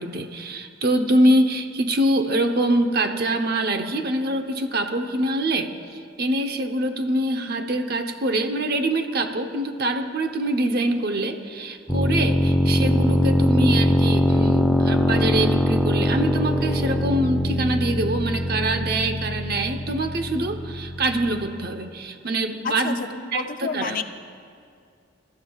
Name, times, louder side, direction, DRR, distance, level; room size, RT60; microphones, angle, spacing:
voice 1, 0.0-5.7 6.2-23.0 23.3-24.0, right 1 dB, 50° right, 6 dB, 0.9 m, -24 dB
sound 1, 11.9-21.5, left 1 dB, ahead, 0.7 m, -22 dB
voice 2, 22.6-24.0, left 5 dB, 45° left, 8 dB, 0.5 m, -30 dB
21.0 x 13.0 x 2.4 m, 2.3 s
head